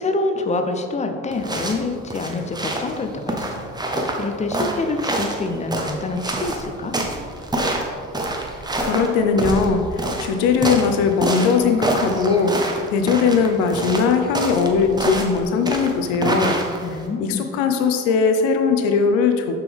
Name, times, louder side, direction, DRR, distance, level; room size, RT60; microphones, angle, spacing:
voice 1, 0.0-7.0 16.8-17.5, left 3 dB, 15° left, 6 dB, 0.5 m, -26 dB
sound 1, 1.3-17.1, right 1 dB, 10° right, 0.8 m, -27 dB
voice 2, 8.8-12.6 12.9-16.6 17.2-19.6, left 5 dB, 60° left, 6 dB, 0.8 m, -19 dB
6.4 x 6.1 x 3.5 m, 2.2 s
figure-of-eight pair, 55°, 43 cm